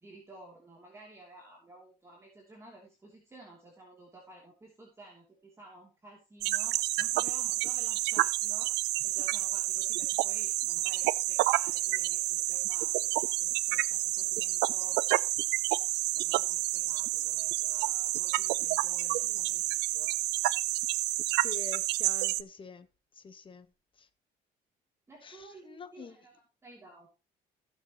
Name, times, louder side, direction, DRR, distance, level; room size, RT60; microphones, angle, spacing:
voice 1, 0.0-8.7 9.0-15.0 16.1-20.2 25.1-27.1, right 1 dB, 15° right, 3.0 m, -53 dB
sound 1, 6.4-22.4, right 18 dB, 85° right, 0.5 m, -29 dB
voice 2, 21.3-22.9 23.1-24.1 25.2-26.2, left 5 dB, 30° left, 1.2 m, -47 dB
16.5 x 6.8 x 3.0 m
cardioid pair, 110°, 17 cm